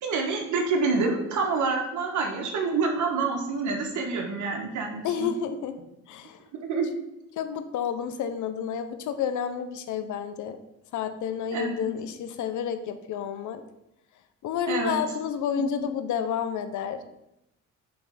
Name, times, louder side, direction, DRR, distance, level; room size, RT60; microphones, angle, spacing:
voice 1, 0.0-5.3 6.5-6.9 11.5-11.9 14.7-15.0 15.6-15.7, right 4 dB, 75° right, 2 dB, 1.4 m, -27 dB
voice 2, 5.0-5.8 6.1-6.4 7.4-10.6 10.9-13.6 14.4-17.0, left 8 dB, 75° left, 9 dB, 0.7 m, -30 dB
6.7 x 3.3 x 5.6 m, 0.87 s
cardioid pair, 90°, 30 cm